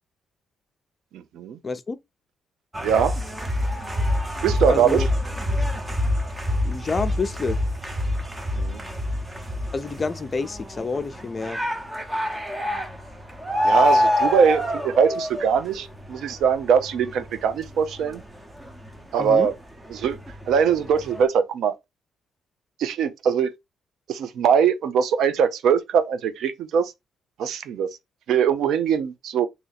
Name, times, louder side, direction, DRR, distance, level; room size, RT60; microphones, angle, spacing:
voice 1, 1.1-1.6 2.8-3.2 4.4-5.0 8.5-8.8 13.6-18.2 19.1-19.5 19.9-20.2 20.5-21.7 22.8-23.5 24.1-26.9 27.4-27.9 28.3-29.5, right 7 dB, 75° right, 0.5 m, -22 dB
voice 2, 1.6-2.0 4.6-5.1 6.6-7.6 9.7-11.6 19.2-19.5, left 4 dB, 30° left, 0.5 m, -28 dB
sound 1, 2.7-19.5 19.8-21.2, left 1 dB, 15° right, 0.8 m, -27 dB
2.9 x 2.6 x 4.1 m
cardioid pair, 90°, 0 cm